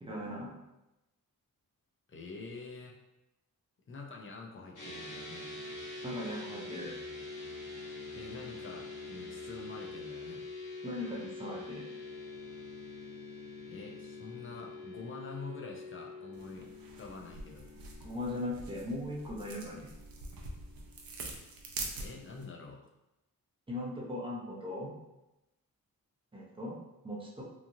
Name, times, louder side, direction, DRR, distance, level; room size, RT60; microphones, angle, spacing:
voice 1, 0.0-0.5 6.0-7.0 10.8-11.8 18.0-19.9 23.7-24.9 26.3-26.8 27.0-27.4, left 1 dB, 15° right, -4 dB, 0.5 m, -39 dB
voice 2, 2.1-3.0 3.9-5.6 8.1-10.5 13.6-16.7 17.0-17.7 22.0-22.9, left 3 dB, 35° left, 0 dB, 0.4 m, -46 dB
sound 1, 4.8-22.2, left 3 dB, 60° left, 1.0 m, -46 dB
sound 2, 16.3-22.5, right 3 dB, 75° right, 0.5 m, -45 dB
3.0 x 2.4 x 2.6 m, 0.93 s
wide cardioid pair, 175°, 35 cm